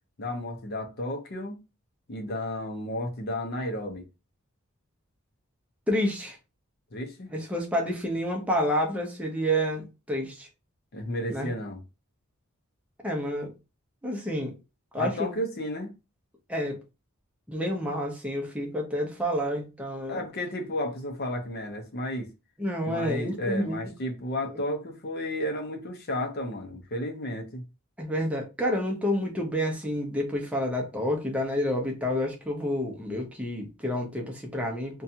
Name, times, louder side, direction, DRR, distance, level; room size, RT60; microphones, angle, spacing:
voice 1, 0.2-1.6 2.1-4.0 6.9-7.3 10.9-11.8 14.9-15.9 20.1-22.3 22.9-27.7, left 1 dB, 45° left, 0.6 m, -32 dB
voice 2, 5.9-6.4 7.3-10.5 11.3-11.5 13.0-13.5 14.0-14.6 14.9-15.3 16.5-16.8 17.5-20.2 22.6-23.8 24.5-24.6 28.0-35.0, equal, 5° right, 0.6 m, -29 dB
2.6 x 2.2 x 2.7 m
head